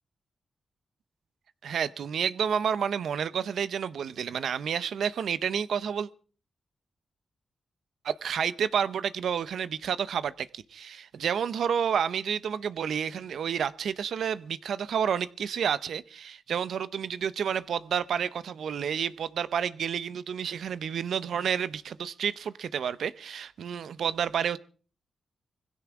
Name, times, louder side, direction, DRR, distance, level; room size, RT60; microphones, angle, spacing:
voice 1, 1.6-6.1 8.0-24.6, right 8 dB, 80° right, 0.7 m, -30 dB
21.0 x 16.0 x 3.6 m
cardioid pair, 60°, 0 cm